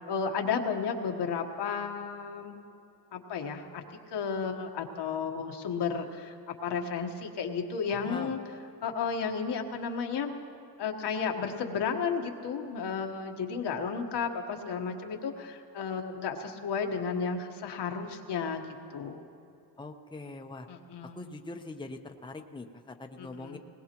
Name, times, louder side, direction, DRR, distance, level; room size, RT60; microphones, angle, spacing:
voice 1, 0.0-2.6 3.1-3.8 4.1-8.4 8.8-10.4 10.8-18.6 18.9-19.2 20.7-21.2 23.2-23.6, left 6 dB, 75° left, 3 dB, 1.4 m, -33 dB
voice 2, 7.9-8.3 19.8-20.7 21.1-23.6, left 2 dB, 10° left, 4 dB, 0.8 m, -42 dB
20.0 x 20.0 x 3.0 m, 2.8 s
cardioid pair, 95°, 40 cm